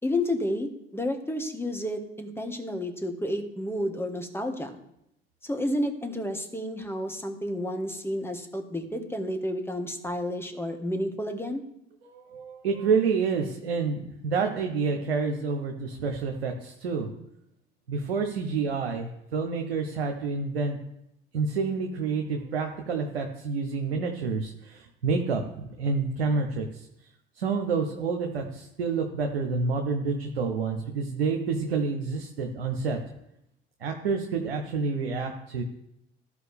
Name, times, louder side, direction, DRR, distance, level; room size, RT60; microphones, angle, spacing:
voice 1, 0.0-4.8 5.5-11.6, left 1 dB, 10° left, 5 dB, 1.6 m, -31 dB
voice 2, 12.0-17.1 17.9-20.8 21.3-26.9 27.3-33.0 33.8-35.6, right 4 dB, 90° right, 3 dB, 0.8 m, -28 dB
14.0 x 4.9 x 3.5 m, 0.82 s
hypercardioid pair, 60°, 30 cm